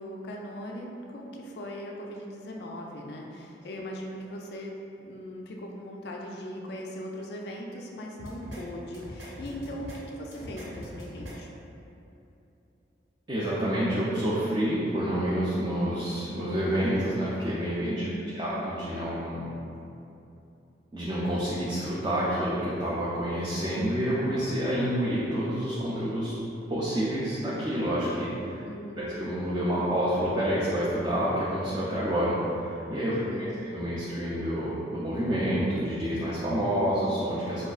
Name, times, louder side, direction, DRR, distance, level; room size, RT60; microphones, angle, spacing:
voice 1, 0.0-4.8 5.0-11.5 17.8-18.6 28.6-29.1 33.1-33.7, equal, 60° left, 0 dB, 0.3 m, -39 dB
sound 1, 8.2-8.6 8.9-10.0 10.3-11.3, equal, 80° right, 1.1 m, -42 dB
voice 2, 13.3-18.0 18.4-19.5 20.9-26.3 26.7-28.6 29.0-33.5 33.7-37.7, equal, 20° right, -8 dB, 0.3 m, -28 dB
4.7 x 2.3 x 2.3 m, 2.8 s
head